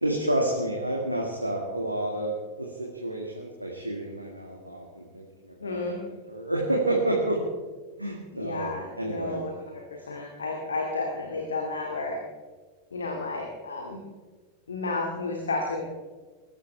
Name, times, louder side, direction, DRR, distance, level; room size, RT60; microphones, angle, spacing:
voice 1, 0.0-5.9 6.3-7.4 8.0-8.7 9.0-9.4, right 1 dB, 90° right, -1 dB, 2.0 m, -29 dB
voice 2, 5.6-6.0 8.3-12.2 12.9-14.0 14.7-15.8, left 3 dB, 70° left, 1 dB, 2.2 m, -32 dB
22.5 x 13.5 x 3.4 m, 1.4 s
figure-of-eight pair, 90°, 0 cm